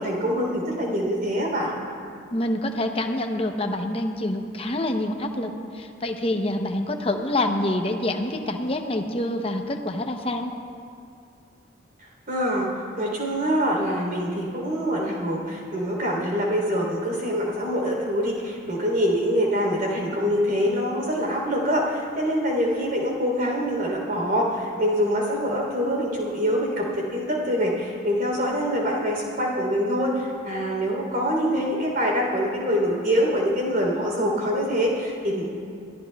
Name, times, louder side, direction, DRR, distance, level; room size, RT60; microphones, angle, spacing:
voice 1, 0.0-1.8 12.3-35.5, equal, 45° right, -2 dB, 3.3 m, -25 dB
voice 2, 2.3-10.5, left 1 dB, 30° left, 4 dB, 0.7 m, -26 dB
22.5 x 15.0 x 2.3 m, 2.5 s
head